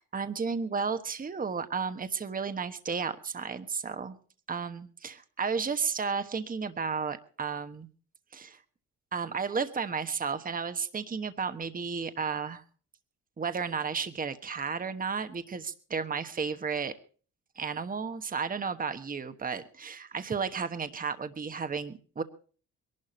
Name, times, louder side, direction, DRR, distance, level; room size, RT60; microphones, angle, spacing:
voice 1, 0.0-4.2 4.5-7.9 8.3-8.6 9.1-12.6 13.4-16.9 17.6-22.2, right 5 dB, 30° right, 10 dB, 1.2 m, -33 dB
21.5 x 12.0 x 4.3 m, 0.41 s
cardioid pair, 90°, 30 cm